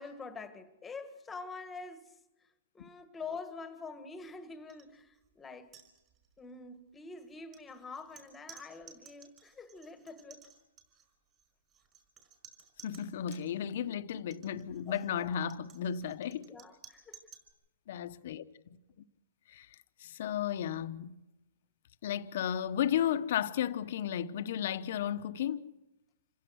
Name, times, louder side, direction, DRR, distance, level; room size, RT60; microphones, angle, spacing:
voice 1, 0.0-2.2 2.7-5.8 6.4-10.4 14.9-15.4 16.4-17.2, left 4 dB, 10° left, 1.6 m, -46 dB
sound 1, 4.7-4.9 5.2-5.3 5.6-6.4 7.2-13.5 14.2-17.5, right 7 dB, 25° right, 5.0 m, -56 dB
voice 2, 12.8-16.5 17.9-18.4 19.5-19.7 20.0-21.2 22.0-25.7, left 9 dB, 60° left, 1.1 m, -34 dB
27.0 x 16.0 x 6.4 m
hypercardioid pair, 150°, 0 cm